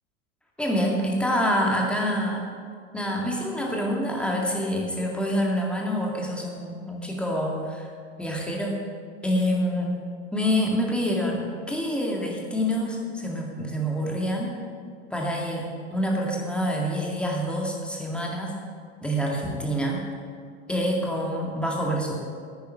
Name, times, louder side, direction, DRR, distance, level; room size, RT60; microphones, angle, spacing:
voice 1, 0.6-2.4 2.9-7.9 8.2-8.8 9.2-10.0 10.3-14.6 15.1-18.6 19.0-20.0 20.7-22.1, equal, 5° left, -1 dB, 2.1 m, -26 dB
9.8 x 9.4 x 5.5 m, 2.1 s
figure-of-eight pair, 90°, 40 cm